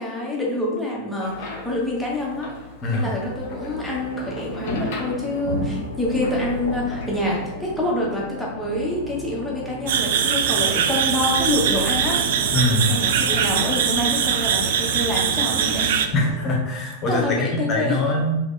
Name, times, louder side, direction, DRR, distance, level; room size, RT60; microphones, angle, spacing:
voice 1, 0.0-2.5 2.9-12.2 12.9-16.1 17.1-18.1, left 1 dB, 5° left, -5 dB, 1.3 m, -26 dB
sound 1, 1.2-7.5, left 3 dB, 50° left, 0.9 m, -35 dB
sound 2, 3.3-16.6, equal, 85° left, 0.8 m, -35 dB
sound 3, 9.9-16.1, right 8 dB, 55° right, 0.3 m, -22 dB
voice 2, 12.5-12.9 13.3-13.4 16.1-18.4, left 1 dB, 30° left, 0 dB, 1.1 m, -23 dB
3.8 x 3.2 x 3.7 m, 1.1 s
figure-of-eight pair, 90°, 0 cm